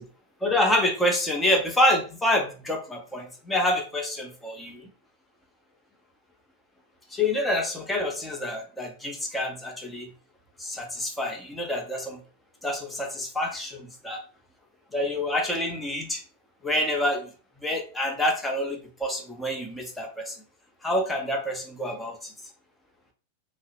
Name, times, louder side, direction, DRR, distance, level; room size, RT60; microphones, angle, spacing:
voice 1, 0.4-4.9 7.1-10.1 10.6-12.2 12.6-14.2 14.9-16.2 16.6-17.3 17.6-20.4 20.8-22.3, left 1 dB, 5° left, 1 dB, 0.7 m, -27 dB
2.7 x 2.0 x 2.8 m, 0.38 s
figure-of-eight pair, 90°, 0 cm